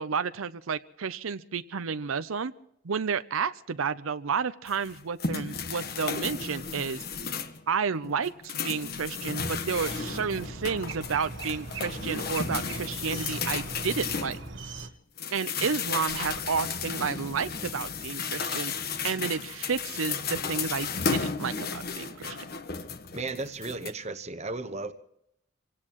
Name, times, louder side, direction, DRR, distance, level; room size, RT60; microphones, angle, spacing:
voice 1, 0.0-2.5 2.8-7.0 7.7-14.4 15.3-18.7 19.0-22.4, right 6 dB, 85° right, 0.6 m, -31 dB
sound 1, 4.7-7.6 8.0-14.8 15.2-23.9, left 5 dB, 50° left, 1.3 m, -34 dB
sound 2, 9.7-14.9, right 3 dB, 60° right, 1.3 m, -40 dB
voice 2, 23.1-24.9, right 3 dB, 35° right, 1.1 m, -35 dB
27.0 x 17.5 x 3.1 m
head